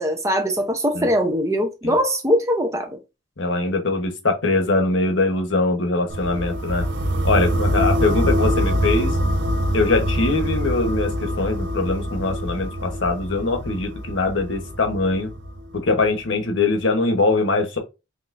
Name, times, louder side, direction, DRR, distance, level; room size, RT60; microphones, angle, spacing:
voice 1, 0.0-2.9, equal, 15° right, 0.8 m, -21 dB
voice 2, 3.4-6.9 7.2-9.2 9.7-15.3 15.7-17.8, left 3 dB, 75° left, 1.1 m, -22 dB
sound 1, 6.1-16.0, equal, 65° right, 0.8 m, -24 dB
5.4 x 3.4 x 2.6 m
head